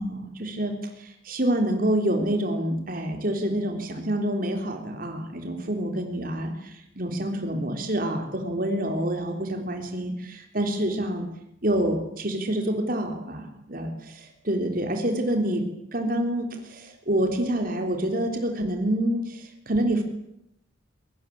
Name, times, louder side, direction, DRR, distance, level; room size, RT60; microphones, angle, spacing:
voice 1, 0.0-11.3 11.6-15.6 15.9-20.0, right 1 dB, 45° right, 4 dB, 3.7 m, -27 dB
24.0 x 24.0 x 8.7 m, 0.79 s
head